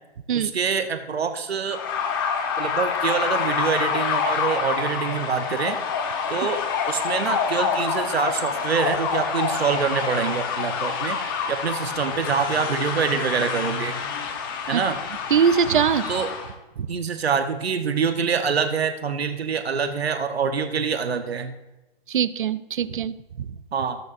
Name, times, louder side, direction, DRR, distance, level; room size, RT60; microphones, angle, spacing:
voice 1, 0.3-1.8 2.6-5.8 6.3-6.6 6.9-11.2 11.5-14.0 14.7-15.0 16.1-16.3 16.9-21.5 23.7-24.0, right 6 dB, 90° right, 7 dB, 1.0 m, -25 dB
sound 1, 1.7-16.5, left 6 dB, 20° left, 0.9 m, -27 dB
voice 2, 15.3-16.1 16.8-16.9 22.1-23.6, right 7 dB, 55° right, 16 dB, 0.6 m, -22 dB
19.0 x 6.8 x 2.6 m, 1.0 s
hypercardioid pair, 165°, 30 cm